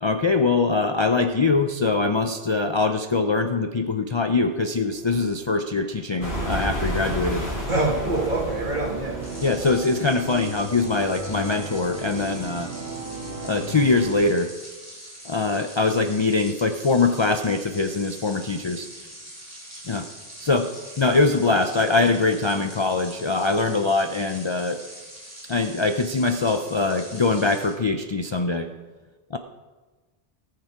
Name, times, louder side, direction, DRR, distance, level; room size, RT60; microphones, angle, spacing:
voice 1, 0.0-7.5 9.4-12.7 13.4-14.5 15.2-18.9 19.9-20.1 20.4-20.7 21.0-24.8 25.5-28.7 29.3-29.4, left 3 dB, 40° left, 7 dB, 0.4 m, -23 dB
sound 1, 4.3-14.2, right 3 dB, 75° right, 1.7 m, -38 dB
sound 2, 6.2-10.7, equal, 85° left, 3.2 m, -31 dB
voice 2, 7.7-9.2, right 2 dB, 50° right, -1 dB, 2.2 m, -25 dB
sound 3, 9.2-27.8, equal, 15° right, 3.5 m, -43 dB
18.0 x 6.7 x 4.6 m, 1.3 s
omnidirectional pair, 1.1 m